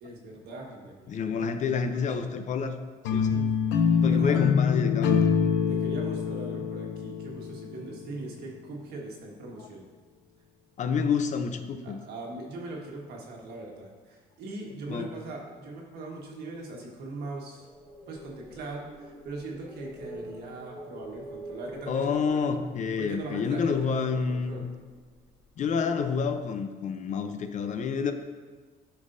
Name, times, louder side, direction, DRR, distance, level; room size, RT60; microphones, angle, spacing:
voice 1, 0.0-1.5 3.3-3.5 4.0-4.4 5.7-9.8 11.8-17.7 18.1-22.4 23.0-24.7, right 2 dB, 70° right, -1 dB, 1.5 m, -40 dB
voice 2, 1.1-2.8 3.1-3.4 4.0-5.2 9.6-9.7 10.8-12.0 14.9-15.1 21.9-24.6 25.6-28.1, left 5 dB, 45° left, 8 dB, 0.6 m, -28 dB
sound 1, 3.0-8.1, left 6 dB, 90° left, 0.6 m, -25 dB
sound 2, 17.6-25.6, right 1 dB, ahead, 1.5 m, -46 dB
10.0 x 5.4 x 2.6 m, 1.4 s
cardioid pair, 110°, 17 cm